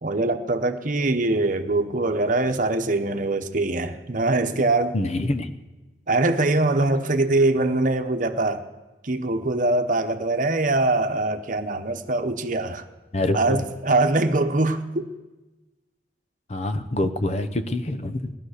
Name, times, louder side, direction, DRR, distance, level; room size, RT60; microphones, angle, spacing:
voice 1, 0.0-4.9 6.1-8.6 9.0-12.8 13.3-15.1, right 2 dB, 50° right, 1.0 m, -23 dB
voice 2, 4.9-5.6 13.1-13.7 16.5-18.3, left 1 dB, 40° left, 0.8 m, -26 dB
18.0 x 11.0 x 6.6 m
head